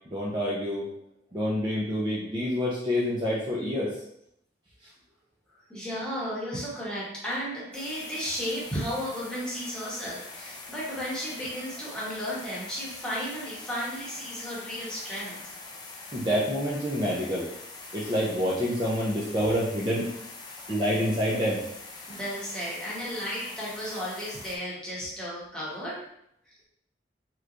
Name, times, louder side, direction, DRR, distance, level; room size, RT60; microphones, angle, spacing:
voice 1, 0.1-0.9 1.3-4.0 16.1-17.5 17.9-20.1 20.7-21.6, equal, 25° right, -6 dB, 0.5 m, -27 dB
voice 2, 5.7-15.4 22.1-26.0, equal, 5° left, -7 dB, 1.0 m, -34 dB
sound 1, 7.7-24.6, left 3 dB, 25° left, 0.4 m, -44 dB
3.4 x 3.0 x 2.5 m, 0.75 s
head